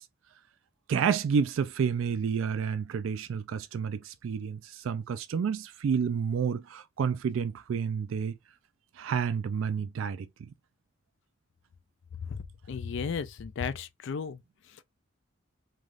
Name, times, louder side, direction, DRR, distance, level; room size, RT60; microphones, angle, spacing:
voice 1, 0.9-8.4 9.0-10.3, right 6 dB, 70° right, 0.3 m, -30 dB
voice 2, 12.7-14.4, left 6 dB, 60° left, 0.4 m, -34 dB
3.3 x 2.3 x 2.5 m
head